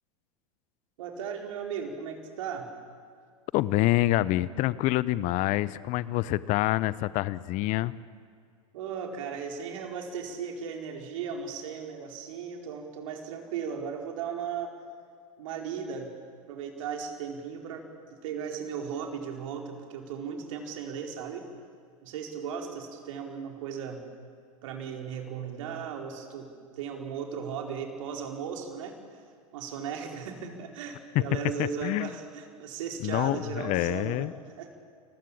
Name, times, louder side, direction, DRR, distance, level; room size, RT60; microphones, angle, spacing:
voice 1, 1.0-2.7 8.7-14.7 15.4-16.1 16.5-17.9 18.2-21.5 22.0-24.0 24.6-29.0 29.5-34.3 34.6-34.8, right 7 dB, 65° right, 3 dB, 4.8 m, -36 dB
voice 2, 3.5-7.9 31.1-31.2 31.6-32.1 33.0-34.3, left 16 dB, 45° left, 18 dB, 0.9 m, -26 dB
29.5 x 21.0 x 8.7 m, 2.2 s
hypercardioid pair, 100°, 18 cm